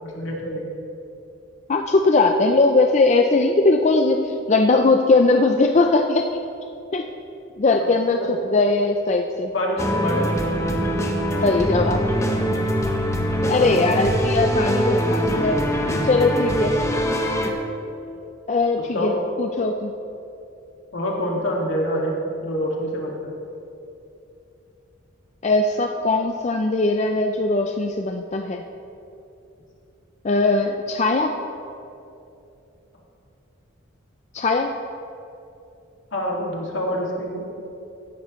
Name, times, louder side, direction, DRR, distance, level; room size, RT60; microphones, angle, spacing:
voice 1, 0.0-0.6 7.8-8.3 9.5-10.3 12.3-12.6 13.4-13.8 15.8-16.1 18.1-18.2 18.8-19.2 20.9-23.4 36.1-37.4, equal, 70° left, -2 dB, 2.0 m, -27 dB
voice 2, 1.7-6.2 6.9-7.0 7.6-8.2 8.5-9.5 11.4-12.0 13.5-15.6 16.0-16.7 18.5-19.1 19.4-19.9 25.4-28.6 30.2-31.4 34.3-34.8, left 3 dB, 35° left, 4 dB, 0.4 m, -20 dB
sound 1, 9.8-17.5, equal, 15° left, 0.8 m, -23 dB
15.5 x 10.5 x 3.1 m, 2.8 s
head